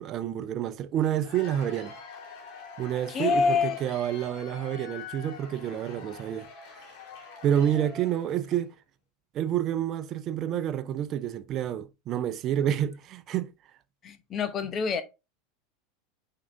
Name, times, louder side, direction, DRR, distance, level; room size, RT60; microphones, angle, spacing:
voice 1, 0.0-1.9 2.8-6.5 7.4-8.7 9.3-13.5, right 10 dB, 40° right, 0.7 m, -28 dB
Cheering / Applause / Crowd, 1.0-8.7, left 5 dB, 50° left, 2.6 m, -45 dB
voice 2, 3.1-3.8 14.0-15.0, left 5 dB, 30° left, 0.9 m, -26 dB
8.5 x 3.8 x 3.5 m
figure-of-eight pair, 80°, 0 cm